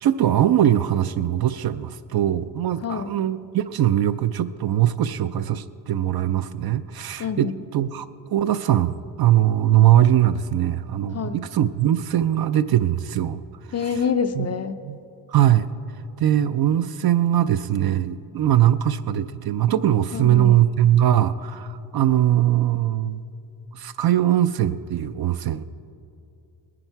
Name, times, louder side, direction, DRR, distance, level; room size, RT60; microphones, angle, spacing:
voice 1, 0.0-8.1 8.3-13.4 14.4-14.5 14.9-15.0 15.3-15.7 16.2-23.2 23.7-25.6, right 11 dB, 50° right, 13 dB, 0.5 m, -21 dB
voice 2, 2.8-3.1 7.2-7.5 11.1-11.4 13.7-14.8 20.1-20.5, left 6 dB, 35° left, 9 dB, 0.4 m, -26 dB
20.0 x 9.9 x 4.6 m, 2.7 s
cardioid pair, 125°, 48 cm